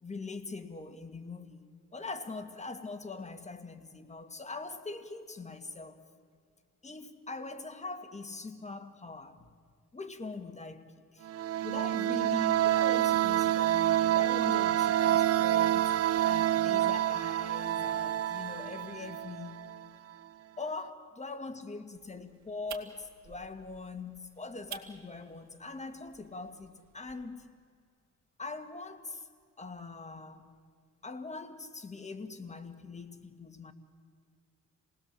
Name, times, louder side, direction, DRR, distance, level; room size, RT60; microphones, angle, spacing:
voice 1, 0.0-6.0 6.8-9.5 9.9-11.3 11.6-19.6 20.6-27.6 28.4-29.3 29.6-30.5 31.0-33.7, left 3 dB, 25° left, 1.9 m, -42 dB
sound 1, 11.2-19.8, right 12 dB, 50° right, 0.6 m, -28 dB
sound 2, 21.9-27.2, right 9 dB, 70° right, 2.1 m, -51 dB
27.5 x 19.0 x 7.6 m
cardioid pair, 90°, 30 cm